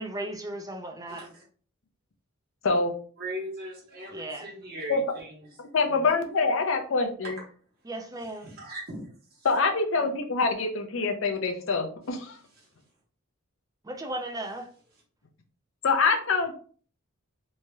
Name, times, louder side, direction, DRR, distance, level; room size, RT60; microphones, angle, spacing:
voice 1, 0.0-1.3 4.1-4.5 7.9-8.5 13.8-14.7, right 1 dB, 15° right, 0.4 m, -36 dB
voice 2, 1.1-1.4 3.2-5.6 5.8-6.1 7.2-7.4 8.4-9.5 12.5-12.7, right 1 dB, 45° right, 1.3 m, -40 dB
voice 3, 5.7-7.3 9.4-12.4 15.8-16.6, left 4 dB, 65° left, 0.5 m, -25 dB
3.1 x 2.7 x 2.3 m
head